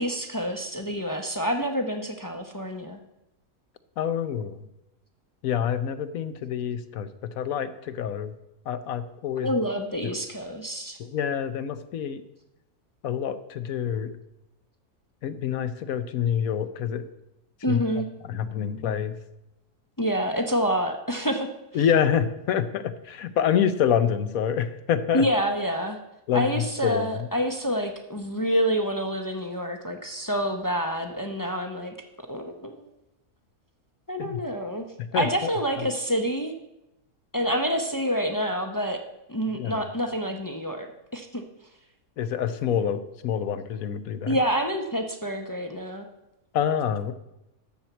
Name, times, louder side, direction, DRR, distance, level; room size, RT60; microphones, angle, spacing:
voice 1, 0.0-3.0 9.4-11.0 17.6-18.1 20.0-21.5 25.1-26.0 26.3-31.9 32.3-32.7 34.1-34.9 35.1-36.5 37.3-39.0 39.3-40.9 41.1-41.4 44.3-46.1, equal, 25° left, 4 dB, 0.5 m, -27 dB
voice 2, 4.0-4.7 5.4-8.3 8.7-9.5 10.0-10.1 11.0-12.2 13.0-14.1 15.2-17.1 17.7-17.8 18.2-19.1 21.7-25.3 26.3-27.3 34.2-34.4 35.0-35.3 35.8-35.9 39.5-39.8 42.2-44.4 46.5-47.1, left 8 dB, 70° left, 12 dB, 1.1 m, -27 dB
12.5 x 4.5 x 8.1 m, 0.90 s
omnidirectional pair, 1.6 m